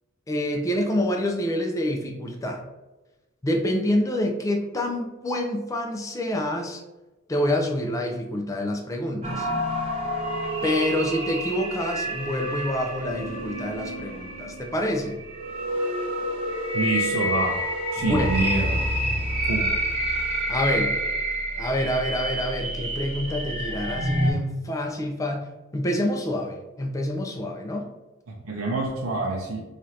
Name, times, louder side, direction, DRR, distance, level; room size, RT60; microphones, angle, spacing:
voice 1, 0.3-2.6 3.4-6.8 7.3-9.5 10.6-15.2 18.0-18.3 20.5-21.0 21.6-27.9, left 1 dB, 15° left, 2 dB, 0.3 m, -27 dB
sound 1, 9.2-24.3, equal, 30° right, 0.6 m, -28 dB
voice 2, 16.7-17.6 17.9-18.8 19.5-19.7 28.3-29.6, right 3 dB, 80° right, -2 dB, 0.5 m, -26 dB
2.7 x 2.4 x 3.1 m, 1.1 s
head